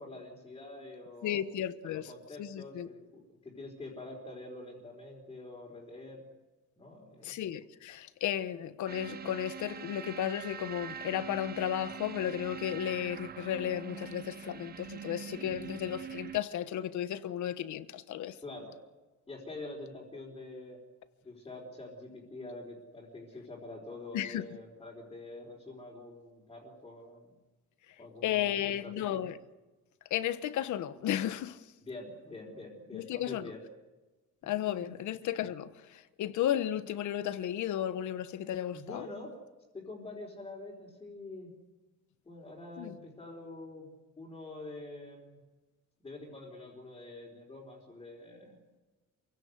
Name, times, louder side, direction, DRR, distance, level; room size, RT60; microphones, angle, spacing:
voice 1, 0.0-1.4 1.8-6.2 6.8-7.4 18.4-18.7 19.3-20.8 21.2-27.3 28.0-29.3 31.8-33.6 34.4-34.9 38.7-39.3 39.7-41.5 42.3-43.9 44.2-45.4 46.0-48.6, left 2 dB, 15° left, 4.1 m, -46 dB
voice 2, 1.2-2.1 2.4-2.9 7.2-18.4 24.1-24.4 28.2-29.4 30.1-31.7 32.9-33.5 34.4-39.1 42.8-43.0, left 11 dB, 75° left, 1.2 m, -34 dB
sound 1, 8.9-16.4, right 7 dB, 30° right, 0.7 m, -44 dB
27.5 x 17.0 x 8.1 m
cardioid pair, 165°, 30 cm